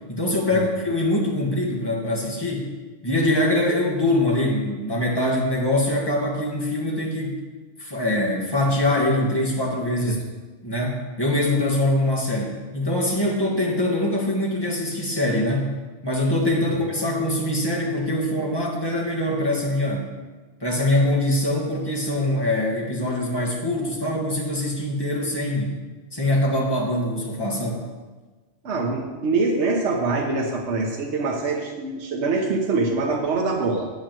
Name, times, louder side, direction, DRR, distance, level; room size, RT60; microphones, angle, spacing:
voice 1, 0.1-2.7 3.0-7.4 7.8-10.2 10.6-15.7 16.0-20.1 20.6-25.8 26.1-27.8, left 1 dB, 20° left, -2 dB, 1.7 m, -23 dB
voice 2, 28.6-33.9, right 3 dB, 65° right, 0 dB, 1.2 m, -24 dB
8.7 x 5.4 x 7.4 m, 1.3 s
omnidirectional pair, 1.3 m